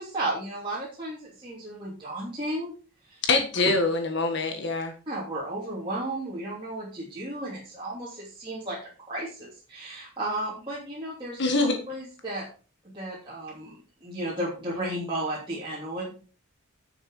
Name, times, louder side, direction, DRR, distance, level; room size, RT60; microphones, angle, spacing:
voice 1, 0.0-2.7 3.1-3.2 5.1-11.4 11.9-12.5 12.8-16.1, right 1 dB, 25° right, -7 dB, 3.0 m, -34 dB
voice 2, 3.2-4.9 11.4-11.8, left 3 dB, 55° left, 4 dB, 1.7 m, -24 dB
10.5 x 6.8 x 4.9 m, 0.37 s
head